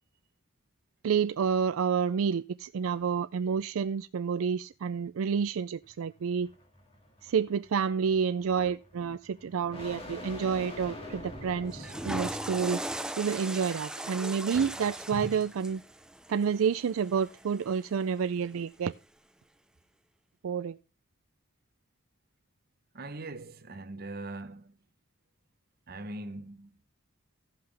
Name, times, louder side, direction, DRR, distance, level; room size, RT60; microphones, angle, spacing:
voice 1, 1.0-6.5 7.2-12.8 13.2-15.8 16.3-18.9 20.4-20.8, right 6 dB, 80° right, 0.4 m, -29 dB
sound 1, 5.8-12.9, left 1 dB, 30° left, 1.9 m, -45 dB
Water / Toilet flush, 11.7-17.9, right 1 dB, 5° right, 0.4 m, -38 dB
voice 2, 22.9-24.8 25.9-26.8, right 2 dB, 45° right, 0.9 m, -41 dB
16.0 x 5.8 x 3.3 m
head